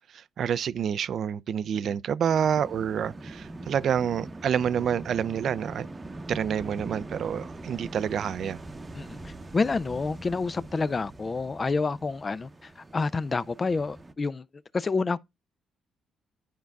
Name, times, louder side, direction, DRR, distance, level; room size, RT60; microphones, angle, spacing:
voice 1, 0.1-5.9 6.3-8.6, right 8 dB, 65° right, 0.3 m, -28 dB
sound 1, 2.3-14.1, right 2 dB, 25° right, 0.7 m, -42 dB
voice 2, 8.9-14.5 14.7-15.2, left 4 dB, 30° left, 0.3 m, -29 dB
11.0 x 4.6 x 2.3 m
cardioid pair, 90°, 0 cm